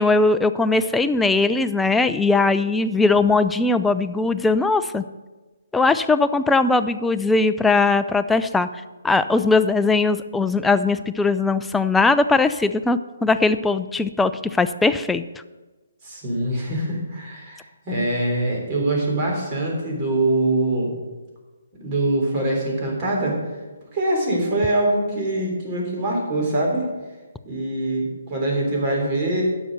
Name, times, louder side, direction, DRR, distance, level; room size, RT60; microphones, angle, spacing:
voice 1, 0.0-5.0 5.7-8.7 9.0-15.2, left 3 dB, 5° left, 11 dB, 0.4 m, -20 dB
voice 2, 16.0-20.9 21.8-23.4 23.9-26.9 27.4-29.4, right 1 dB, 30° right, -1 dB, 3.6 m, -23 dB
9.9 x 6.9 x 6.7 m, 1.2 s
hypercardioid pair, 150°, 0 cm